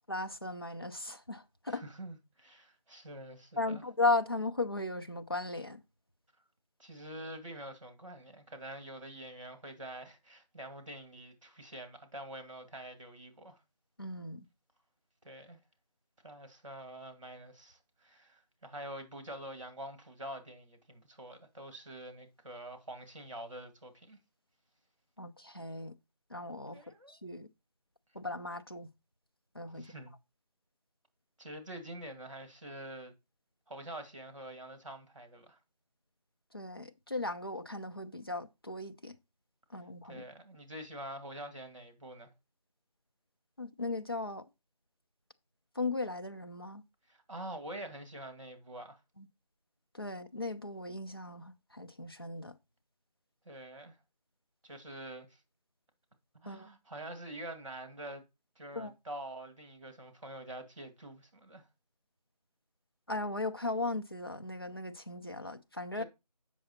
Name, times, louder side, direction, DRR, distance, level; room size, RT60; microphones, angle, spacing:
voice 1, 0.1-1.8 3.6-5.8 14.0-14.5 25.2-25.9 26.3-26.8 27.1-27.5 28.1-28.9 29.5-29.9 36.5-39.1 39.7-40.2 43.6-44.4 45.8-46.8 49.2-49.3 49.9-52.5 56.5-56.7 58.8-58.9 63.1-66.0, left 2 dB, 35° left, 0.6 m, -36 dB
voice 2, 1.7-3.8 6.8-13.6 15.2-15.6 16.2-24.2 26.7-27.2 29.7-30.1 31.4-33.1 33.7-35.6 40.0-42.3 47.1-49.0 53.5-54.0 54.6-55.4 56.3-58.2 58.6-61.7 66.0-66.1, right 1 dB, 50° right, 2.1 m, -46 dB
7.7 x 6.2 x 4.2 m
figure-of-eight pair, 180°, 21 cm